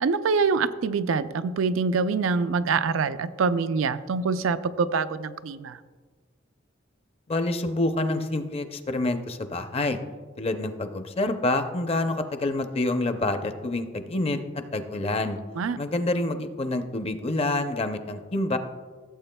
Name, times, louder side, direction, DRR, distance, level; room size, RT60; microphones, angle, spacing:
voice 1, 0.0-5.8 15.6-15.8, right 5 dB, 90° right, 13 dB, 0.4 m, -25 dB
voice 2, 7.3-10.0 10.4-14.4 14.7-15.4 15.8-18.6, left 2 dB, 30° left, 8 dB, 0.5 m, -27 dB
16.0 x 7.8 x 2.2 m, 1.5 s
head